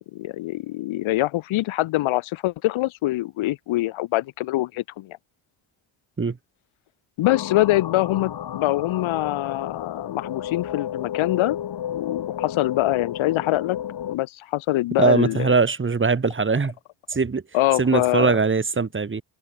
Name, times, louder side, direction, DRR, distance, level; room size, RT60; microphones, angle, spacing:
voice 1, 0.1-5.2 7.2-11.6 11.9-13.8 14.1-15.5 17.5-18.3, left 17 dB, 80° left, 3.6 m, -24 dB
sound 1, 7.2-14.2, left 10 dB, 55° left, 4.4 m, -32 dB
voice 2, 15.0-16.7 17.1-17.4 17.8-19.2, right 4 dB, 25° right, 3.2 m, -21 dB
cardioid pair, 100°, 47 cm